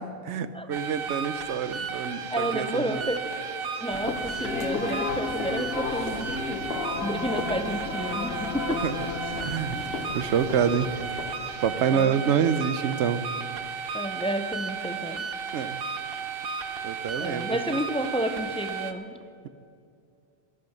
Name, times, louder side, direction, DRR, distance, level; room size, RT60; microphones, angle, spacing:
voice 1, 0.0-3.1 8.8-8.9 9.4-9.8 10.1-11.0 11.6-13.2 15.5-15.8 16.8-17.6, right 7 dB, 90° right, 14 dB, 1.0 m, -27 dB
sound 1, 0.7-18.9, right 5 dB, 60° right, 1.0 m, -34 dB
voice 2, 2.3-3.3 3.8-8.9 9.7-10.0 11.9-12.4 13.9-15.3 17.2-19.2, right 1 dB, 10° left, 8 dB, 0.4 m, -31 dB
sound 2, 3.9-11.7, left 5 dB, 60° left, 1.1 m, -33 dB
13.5 x 12.0 x 6.5 m, 2.4 s
omnidirectional pair, 1.1 m